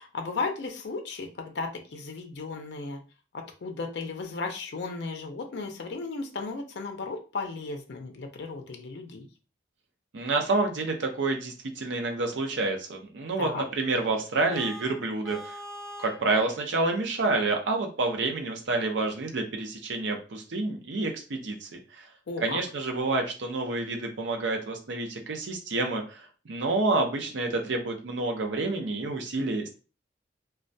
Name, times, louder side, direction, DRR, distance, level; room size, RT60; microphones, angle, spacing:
voice 1, 0.0-3.0 3.3-9.3 13.4-13.6 22.3-22.6, left 3 dB, 70° left, 4 dB, 0.4 m, -35 dB
voice 2, 10.1-15.6 16.0-21.7 22.0-22.1 22.4-29.7, right 3 dB, 85° right, 3 dB, 0.6 m, -28 dB
Vehicle horn car horn honking, 14.5-16.3, equal, ahead, 0.3 m, -41 dB
2.2 x 2.1 x 2.6 m, 0.34 s
head